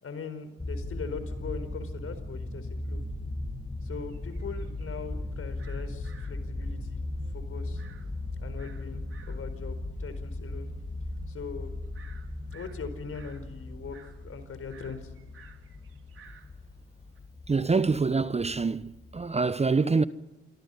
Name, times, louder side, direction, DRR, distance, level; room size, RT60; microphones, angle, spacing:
voice 1, 0.0-3.0 3.8-7.0 7.3-7.8 8.4-10.7 11.3-11.7 12.5-15.1, left 5 dB, 50° left, 4.8 m, -41 dB
sound 1, 0.6-19.3, left 2 dB, 20° left, 2.6 m, -38 dB
sound 2, 4.0-17.2, right 6 dB, 45° right, 4.3 m, -57 dB
voice 2, 17.5-20.0, right 4 dB, 20° right, 0.9 m, -25 dB
27.5 x 24.5 x 5.7 m
hypercardioid pair, 50°, 30 cm